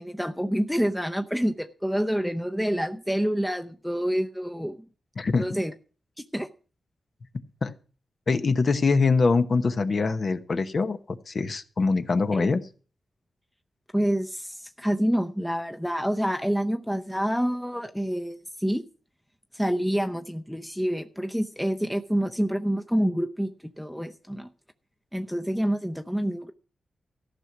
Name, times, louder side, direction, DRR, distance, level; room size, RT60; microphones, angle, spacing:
voice 1, 0.0-4.8 5.4-5.7 6.3-6.5 12.3-12.5 13.9-18.9 19.5-24.5 25.1-26.5, equal, ahead, 6 dB, 0.7 m, -27 dB
voice 2, 5.2-5.5 7.6-7.7 8.3-11.0 11.3-12.6, left 4 dB, 50° left, 10 dB, 1.0 m, -23 dB
14.5 x 6.1 x 8.1 m, 0.39 s
cardioid pair, 90°, 0 cm